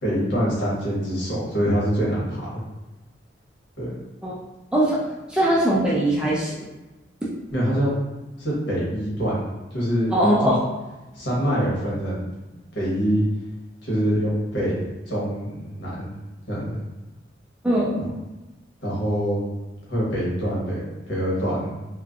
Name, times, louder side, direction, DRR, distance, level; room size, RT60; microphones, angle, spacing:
voice 1, 0.0-2.6 3.8-3.9 7.5-7.9 8.4-10.1 10.4-10.5 11.1-12.3 12.7-13.2 13.8-16.1 16.5-16.8 18.8-19.4 19.9-21.7, equal, 70° left, -7 dB, 1.2 m, -25 dB
voice 2, 4.7-6.6 10.1-10.6 17.6-18.1, right 1 dB, 5° right, -6 dB, 0.4 m, -21 dB
3.1 x 2.2 x 2.4 m, 1.1 s
head